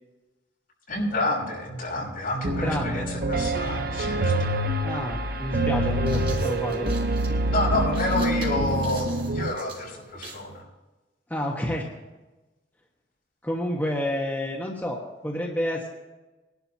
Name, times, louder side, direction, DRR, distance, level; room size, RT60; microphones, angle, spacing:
voice 1, 0.9-4.6 7.5-10.6, left 2 dB, 55° left, -4 dB, 5.8 m, -29 dB
voice 2, 2.4-3.1 4.8-6.9 11.3-11.9 13.4-15.9, left 1 dB, 10° left, -2 dB, 1.3 m, -29 dB
Piano, 2.4-9.5, right 1 dB, 55° right, 0.9 m, -26 dB
sound 1, 4.7-4.8 5.7-10.5, right 4 dB, 30° right, 3.4 m, -44 dB
22.0 x 11.5 x 2.9 m, 1.1 s
head